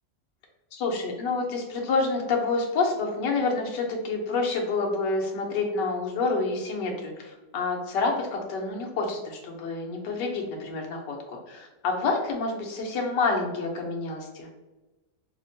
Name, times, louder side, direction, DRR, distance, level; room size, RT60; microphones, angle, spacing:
voice 1, 0.7-14.5, left 3 dB, 80° left, 1 dB, 1.4 m, -28 dB
5.3 x 2.1 x 2.6 m, 1.1 s
omnidirectional pair, 1.9 m